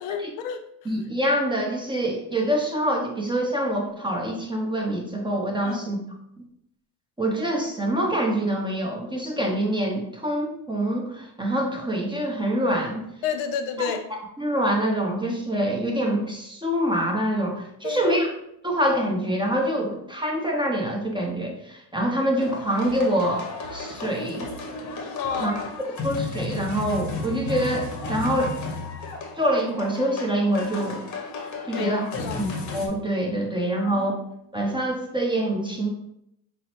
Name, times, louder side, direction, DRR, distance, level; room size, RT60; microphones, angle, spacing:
voice 1, 0.0-0.9 5.6-5.9 13.2-14.0 17.8-18.2 25.2-25.5 31.7-32.5 33.8-34.1, left 6 dB, 70° left, 8 dB, 0.6 m, -30 dB
voice 2, 0.8-6.0 7.2-13.0 13.8-13.9 14.4-18.3 18.6-24.5 25.3-25.5 26.0-28.6 29.4-31.0 31.7-32.1 32.3-34.1 34.5-35.9, right 1 dB, 10° right, 0 dB, 0.5 m, -25 dB
sound 1, 22.4-32.9, left 3 dB, 35° left, 0.8 m, -34 dB
5.0 x 2.0 x 2.9 m, 0.77 s
supercardioid pair, 95°, 48 cm